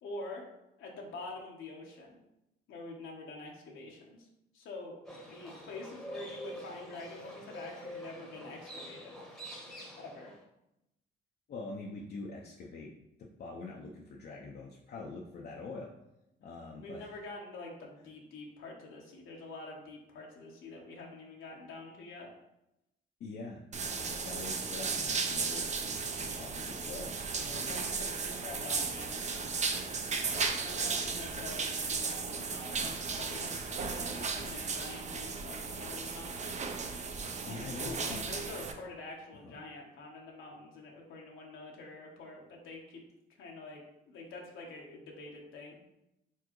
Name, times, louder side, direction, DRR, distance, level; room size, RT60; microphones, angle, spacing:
voice 1, 0.0-0.5 0.8-2.2 2.7-4.3 4.5-5.0 5.2-9.2 10.0-10.3 16.8-22.3 27.5-29.2 30.2-36.6 37.4-43.0 43.4-45.8, left 2 dB, 85° left, -1 dB, 1.0 m, -46 dB
Livestock farm animals working animals, 5.0-10.4, equal, ahead, 1.0 m, -46 dB
voice 2, 11.5-12.9 13.2-15.9 16.4-17.2 23.2-27.8 37.5-38.2 39.4-39.6, left 3 dB, 55° left, -1 dB, 0.6 m, -45 dB
sound 1, 23.7-38.7, right 4 dB, 35° right, 0.5 m, -35 dB
4.5 x 3.6 x 3.0 m, 0.88 s
cardioid pair, 90°, 20 cm